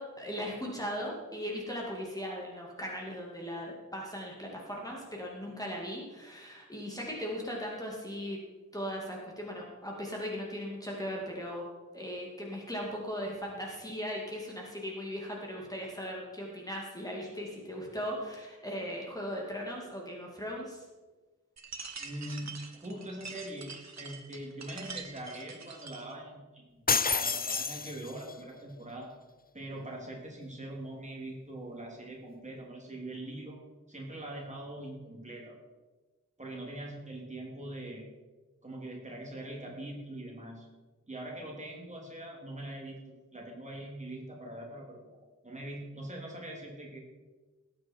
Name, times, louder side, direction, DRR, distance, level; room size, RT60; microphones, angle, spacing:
voice 1, 0.0-8.4 8.7-11.6 11.9-20.8, equal, 10° left, -2 dB, 2.5 m, -38 dB
sound 1, 21.6-26.1, right 5 dB, 60° right, 1.4 m, -45 dB
voice 2, 22.0-26.8 27.2-29.1 29.5-33.6 33.9-35.6 36.4-38.1 38.6-40.7 41.1-47.0, right 1 dB, 25° right, -2 dB, 3.1 m, -42 dB
sound 2, 26.9-28.3, left 5 dB, 30° left, 0.4 m, -29 dB
18.5 x 9.0 x 4.6 m, 1.2 s
wide cardioid pair, 110°, 31 cm